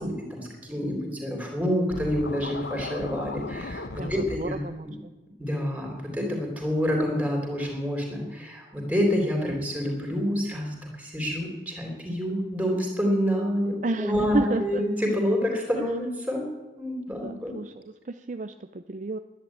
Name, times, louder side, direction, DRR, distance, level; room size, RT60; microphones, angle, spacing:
voice 1, 0.0-4.6 4.8-4.9 5.4-16.4 16.8-17.5, equal, 10° right, 0 dB, 3.5 m, -28 dB
Scratching (performance technique), 1.9-4.5, left 2 dB, 65° left, 0.9 m, -36 dB
voice 2, 4.4-4.9 13.8-14.8 17.1-17.7 18.1-19.2, right 2 dB, 40° right, 9 dB, 0.5 m, -31 dB
11.5 x 10.5 x 8.7 m, 1.2 s
head